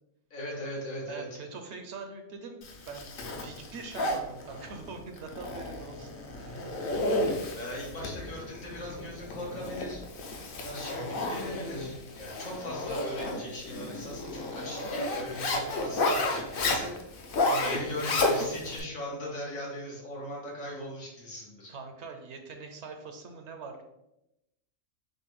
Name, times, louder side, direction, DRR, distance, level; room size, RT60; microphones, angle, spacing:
voice 1, 0.3-1.4 7.5-10.0 10.6-16.9 17.4-21.7, left 1 dB, 85° left, -4 dB, 1.7 m, -39 dB
voice 2, 1.1-3.1 3.4-6.6 15.5-15.9 21.7-23.8, right 4 dB, 65° right, 5 dB, 0.8 m, -43 dB
Zipper (clothing), 2.6-18.8, left 2 dB, 55° left, 0.7 m, -32 dB
6.5 x 2.2 x 3.1 m, 0.88 s
omnidirectional pair, 1.4 m